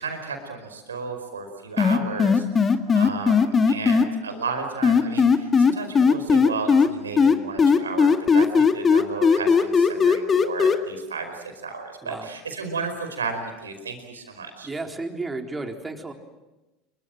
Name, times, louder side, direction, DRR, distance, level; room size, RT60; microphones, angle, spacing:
voice 1, 0.0-14.7, right 4 dB, 85° right, 6 dB, 4.9 m, -33 dB
sound 1, 1.8-4.0 4.8-6.9 7.2-10.7, left 5 dB, 25° left, 2.0 m, -17 dB
voice 2, 14.6-16.1, right 3 dB, 15° right, 3 dB, 3.9 m, -32 dB
28.0 x 23.5 x 7.7 m, 1.1 s
figure-of-eight pair, 75°, 0 cm